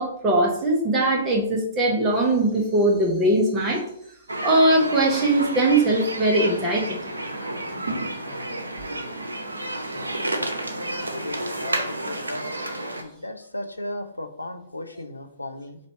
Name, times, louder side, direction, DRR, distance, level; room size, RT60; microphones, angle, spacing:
voice 1, 0.0-3.8 4.4-7.0, right 1 dB, 15° right, -2 dB, 1.2 m, -21 dB
sound 1, 4.3-13.0, right 1 dB, 75° right, 0.7 m, -30 dB
voice 2, 10.7-12.6 13.0-15.8, left 1 dB, 85° left, 7 dB, 0.5 m, -36 dB
3.2 x 2.6 x 4.4 m, 0.70 s
figure-of-eight pair, 120°, 0 cm